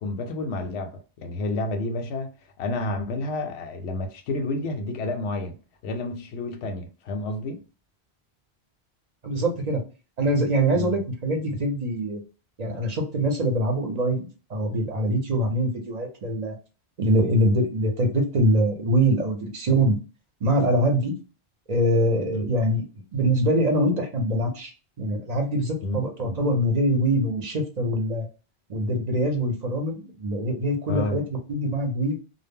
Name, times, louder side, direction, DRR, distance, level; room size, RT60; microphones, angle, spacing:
voice 1, 0.0-2.3 2.6-5.5 5.8-7.6 10.7-11.0 22.3-22.5 25.8-26.0 26.2-26.4 30.9-31.2, left 2 dB, 90° left, 0.8 m, -30 dB
voice 2, 9.2-9.8 10.2-12.2 12.6-16.6 17.0-20.0 20.4-21.1 21.7-22.8 23.1-24.7 25.0-28.3 28.7-32.2, right 1 dB, 45° right, 0.7 m, -24 dB
2.1 x 2.0 x 3.4 m
omnidirectional pair, 1.1 m